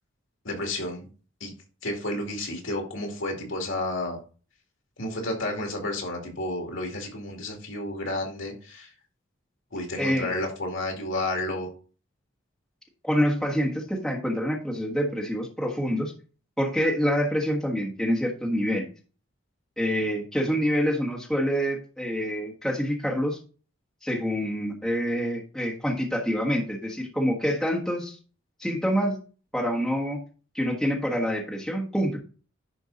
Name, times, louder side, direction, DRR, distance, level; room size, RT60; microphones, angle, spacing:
voice 1, 0.4-1.1 1.4-1.5 1.8-4.2 5.0-8.9 9.7-11.7, left 1 dB, 65° left, 2 dB, 2.3 m, -31 dB
voice 2, 10.0-10.3 13.0-16.1 16.6-18.9 19.8-23.4 24.0-28.2 28.6-29.2 29.5-30.2 30.5-32.2, equal, ahead, -3 dB, 1.4 m, -26 dB
10.5 x 4.5 x 4.0 m, 0.38 s
head